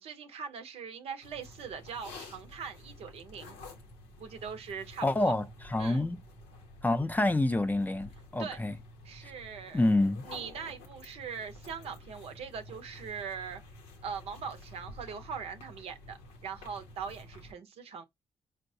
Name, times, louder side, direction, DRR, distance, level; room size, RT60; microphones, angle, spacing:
voice 1, 0.0-3.6 4.2-5.3 5.8-6.0 8.4-8.6 9.0-9.9 10.2-13.6 14.0-18.0, right 6 dB, 70° right, 0.6 m, -41 dB
sound 1, 1.2-17.5, left 2 dB, 90° left, 0.7 m, -50 dB
voice 2, 5.0-6.2 6.8-8.7 9.2-9.3 9.7-10.3, left 2 dB, 15° left, 0.5 m, -27 dB
4.5 x 2.1 x 2.7 m
supercardioid pair, 45°, 11 cm